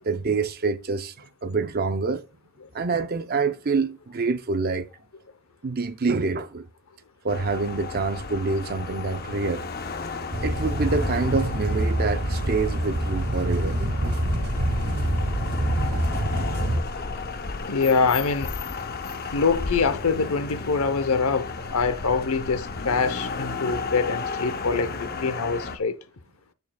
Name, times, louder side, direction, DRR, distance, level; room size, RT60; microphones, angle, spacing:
voice 1, 0.0-2.2 2.7-4.9 5.6-6.7 7.2-9.7 10.4-13.9 23.7-23.8, right 4 dB, 45° right, 0.5 m, -26 dB
sound 1, 7.3-25.8, left 4 dB, 45° left, 0.7 m, -33 dB
sound 2, 10.3-16.8, right 1 dB, 70° right, 1.4 m, -26 dB
voice 2, 17.7-18.5 19.3-25.9, left 4 dB, 75° left, 0.8 m, -24 dB
9.7 x 6.5 x 2.3 m
head